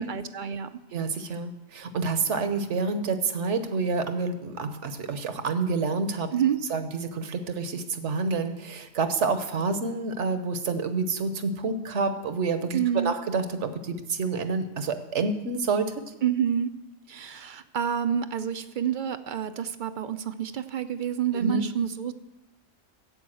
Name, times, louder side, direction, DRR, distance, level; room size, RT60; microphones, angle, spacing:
voice 1, 0.0-0.8 6.3-6.6 12.7-13.1 16.2-16.7 17.1-22.1, right 8 dB, 55° right, 11 dB, 0.6 m, -28 dB
voice 2, 0.9-6.3 6.7-15.9 21.3-21.6, right 4 dB, 70° right, 9 dB, 1.3 m, -28 dB
11.0 x 8.1 x 7.7 m, 0.99 s
omnidirectional pair, 1.3 m